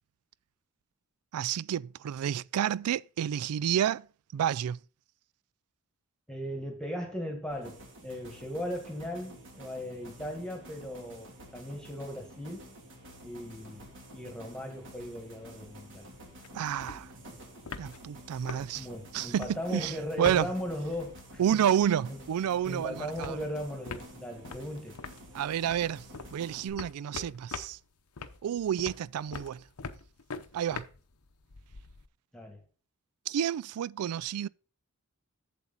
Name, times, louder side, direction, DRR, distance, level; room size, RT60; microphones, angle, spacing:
voice 1, 1.3-4.1 4.3-4.8 16.5-17.1 17.8-18.9 19.1-20.5 21.4-23.4 25.3-26.1 26.3-27.8 28.4-29.6 30.5-30.9 33.3-34.5, right 9 dB, 85° right, 0.3 m, -30 dB
voice 2, 6.3-12.7 13.2-16.1 18.7-21.6 22.1-22.2 22.6-25.0 32.3-32.6, equal, 5° left, 1.6 m, -38 dB
sound 1, 7.5-26.7, equal, 60° right, 2.9 m, -50 dB
sound 2, 13.3-14.0 14.3-14.4 14.6-22.0 22.3-32.1, left 4 dB, 85° left, 0.8 m, -45 dB
8.1 x 7.5 x 4.0 m
head